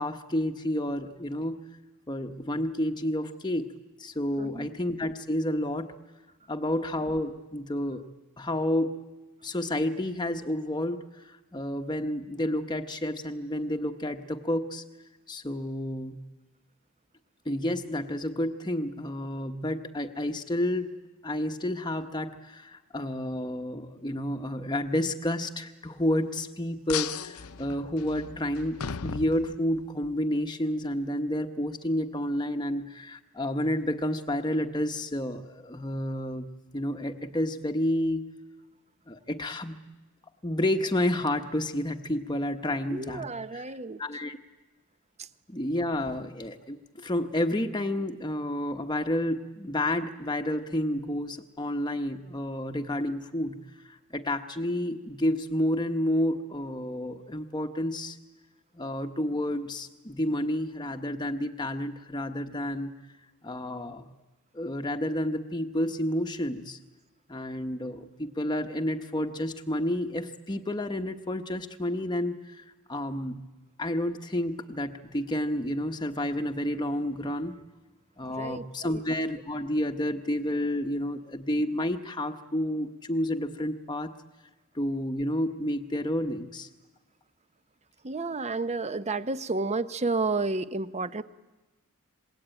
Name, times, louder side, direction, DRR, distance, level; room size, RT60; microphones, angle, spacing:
voice 1, 0.0-1.6 2.1-3.7 4.0-5.9 6.5-8.0 8.4-9.0 9.4-14.8 15.3-16.2 17.4-20.9 21.2-36.5 36.7-38.3 39.1-39.8 40.4-43.6 44.0-44.4 45.5-53.6 53.8-58.2 58.7-62.9 63.4-64.0 64.5-66.8 67.3-73.4 73.8-77.6 78.2-84.1 84.7-86.7, left 1 dB, 20° left, 5 dB, 1.0 m, -30 dB
voice 2, 4.4-4.7 42.9-44.0 45.2-45.3 78.4-79.0 88.0-91.2, right 3 dB, 30° right, 13 dB, 0.8 m, -31 dB
sound 1, 26.9-30.1, left 7 dB, 75° left, 0.8 m, -36 dB
27.0 x 21.0 x 8.9 m, 1.1 s
head